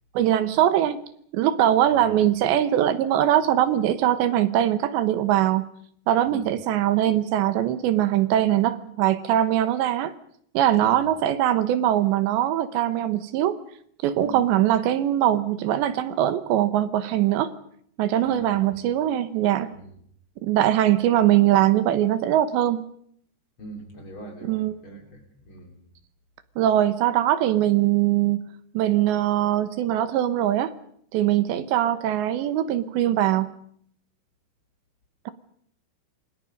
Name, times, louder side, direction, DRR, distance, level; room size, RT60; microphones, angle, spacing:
voice 1, 0.1-1.0 1.3-5.7 6.1-10.1 10.5-13.6 14.0-17.5 18.0-19.7 20.4-22.8 24.4-24.7 26.6-28.5 28.7-30.7 31.1-33.5, right 12 dB, 75° right, 12 dB, 3.2 m, -22 dB
voice 2, 18.2-18.5 19.7-19.9 23.6-25.8, right 2 dB, 30° left, 4 dB, 4.5 m, -41 dB
28.0 x 25.0 x 5.3 m, 0.65 s
omnidirectional pair, 5.3 m